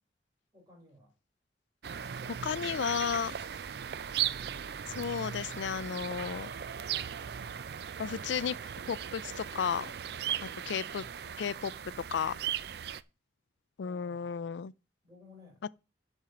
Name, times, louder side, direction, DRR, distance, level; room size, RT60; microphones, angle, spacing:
voice 1, 0.5-1.2 2.2-2.4 10.1-10.4 13.8-14.5 15.0-15.6, left 2 dB, 20° right, 4.4 m, -58 dB
sound 1, 1.8-13.0, right 9 dB, 60° right, 0.4 m, -38 dB
voice 2, 2.4-3.3 4.9-6.5 8.0-8.6 8.9-9.9 10.7-11.0 11.4-11.7 12.1-12.4 13.8-14.7, left 7 dB, 80° left, 0.4 m, -33 dB
10.5 x 4.5 x 6.2 m
head